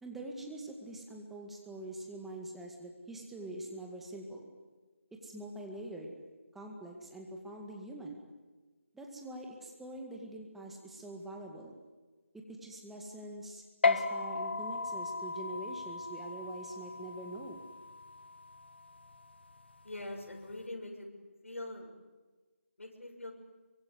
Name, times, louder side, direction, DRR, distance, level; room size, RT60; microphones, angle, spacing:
voice 1, 0.0-4.5 5.2-6.1 6.5-8.2 8.9-11.8 12.3-17.6, right 1 dB, 5° right, 0 dB, 2.0 m, -44 dB
sound 1, 13.8-20.6, left 4 dB, 55° left, 1.4 m, -36 dB
voice 2, 19.8-21.1 21.4-21.9 22.8-23.3, left 1 dB, 75° left, 1 dB, 6.8 m, -43 dB
24.5 x 24.0 x 9.6 m, 1.3 s
figure-of-eight pair, 165°, 7 cm